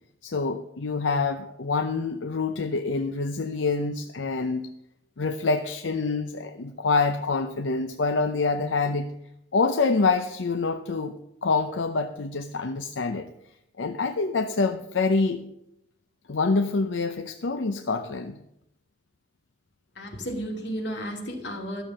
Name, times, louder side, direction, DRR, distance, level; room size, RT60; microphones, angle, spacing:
voice 1, 0.2-4.7 5.2-9.1 9.5-11.2 11.4-13.3 13.8-15.4 16.3-18.4, left 4 dB, 85° left, 7 dB, 0.7 m, -26 dB
voice 2, 20.0-21.8, equal, 65° left, 1 dB, 2.6 m, -33 dB
13.0 x 7.1 x 7.4 m, 0.81 s
head